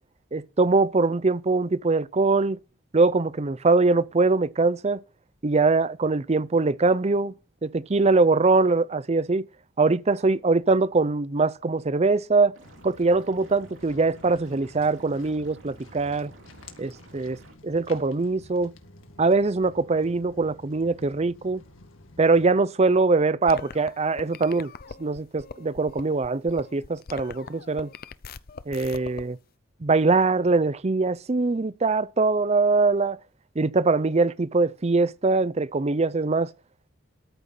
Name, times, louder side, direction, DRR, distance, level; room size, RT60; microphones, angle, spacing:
voice 1, 0.3-2.6 2.9-5.0 5.4-7.3 7.6-9.4 9.8-12.6 12.8-16.3 16.8-17.4 17.6-18.7 19.2-21.6 22.2-24.7 25.0-27.9 28.7-29.4 29.8-33.2 33.6-36.5, right 3 dB, 30° right, 0.6 m, -22 dB
Liquid, 12.5-17.5, right 2 dB, 65° right, 2.9 m, -52 dB
Walk footsteps, 12.6-22.5, left 2 dB, 75° left, 2.0 m, -50 dB
sound 1, 23.5-29.2, left 5 dB, 45° left, 0.6 m, -42 dB
13.5 x 6.2 x 7.2 m
head